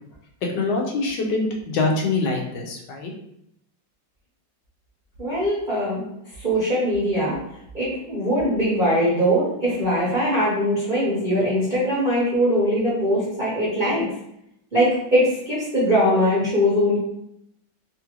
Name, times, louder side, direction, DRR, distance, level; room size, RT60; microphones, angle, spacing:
voice 1, 0.5-3.1, left 3 dB, 70° left, 0 dB, 1.3 m, -24 dB
voice 2, 5.2-6.0 6.4-7.4 7.7-14.0 14.7-17.0, equal, 40° right, -9 dB, 0.7 m, -21 dB
3.5 x 2.4 x 2.9 m, 0.77 s
omnidirectional pair, 2.1 m